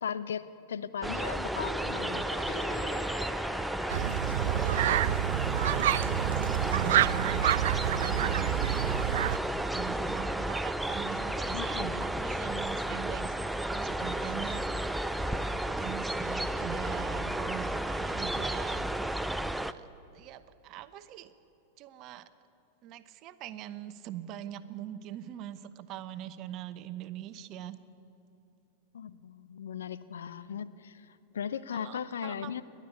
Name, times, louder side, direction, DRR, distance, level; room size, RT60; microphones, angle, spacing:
voice 1, 0.0-2.4 11.5-12.1 28.9-32.6, left 8 dB, 65° left, 14 dB, 0.7 m, -38 dB
sound 1, 1.0-19.7, right 1 dB, 5° right, 0.6 m, -33 dB
sound 2, 1.1-6.7, left 2 dB, 30° left, 3.0 m, -43 dB
sound 3, 3.9-9.4, right 13 dB, 55° right, 0.4 m, -28 dB
voice 2, 4.2-5.0 5.9-7.4 7.8-8.6 9.1-14.9 15.2-18.9 19.3-21.3 21.8-22.3 22.8-27.8 31.7-32.6, right 12 dB, 40° right, 13 dB, 0.9 m, -42 dB
29.0 x 11.5 x 8.4 m, 2.8 s
figure-of-eight pair, 90°, 0 cm